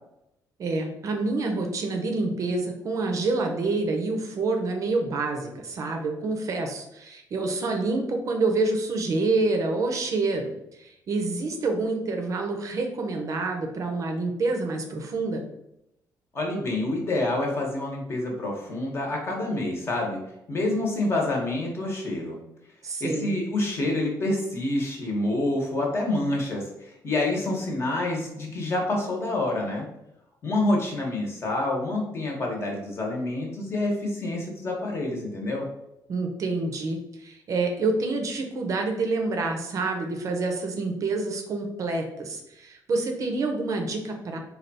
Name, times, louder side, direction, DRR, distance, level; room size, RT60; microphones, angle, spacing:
voice 1, 0.6-15.4 22.8-23.3 36.1-44.4, right 3 dB, 45° right, 4 dB, 0.5 m, -27 dB
voice 2, 16.3-20.2 20.5-22.4 23.0-29.8 30.4-35.7, left 2 dB, 35° left, 0 dB, 1.0 m, -27 dB
3.3 x 2.3 x 4.0 m, 0.84 s
cardioid pair, 135°, 7 cm